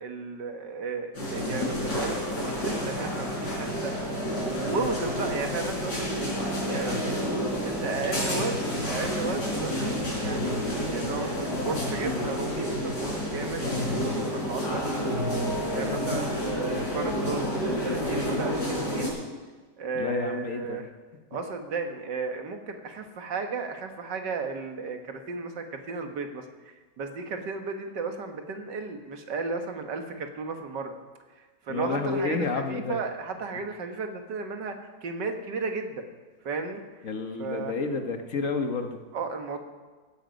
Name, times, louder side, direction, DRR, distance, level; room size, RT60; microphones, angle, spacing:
voice 1, 0.0-3.9 4.4-7.2 7.6-10.6 10.9-15.1 15.7-19.2 19.8-20.9 21.3-30.9 31.4-36.1 36.4-36.8 37.4-37.7 39.1-39.6, right 4 dB, 85° right, 5 dB, 2.1 m, -34 dB
sound 1, 1.1-19.1, equal, 75° left, 5.2 m, -29 dB
voice 2, 15.7-16.3 19.9-20.8 31.7-33.0 37.0-39.0, left 4 dB, 50° left, 6 dB, 1.4 m, -30 dB
16.5 x 12.5 x 5.3 m, 1.3 s
omnidirectional pair, 1.8 m